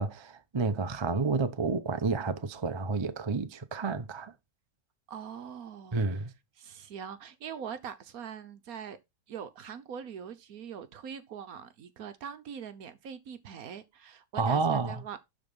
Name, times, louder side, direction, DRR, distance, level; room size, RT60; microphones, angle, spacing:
voice 1, 0.0-4.3 5.9-6.3 14.4-15.0, right 4 dB, 40° right, 0.4 m, -30 dB
voice 2, 5.1-6.2 6.6-9.0 9.3-15.2, right 7 dB, 60° right, 1.3 m, -42 dB
12.0 x 4.0 x 5.4 m
omnidirectional pair, 1.9 m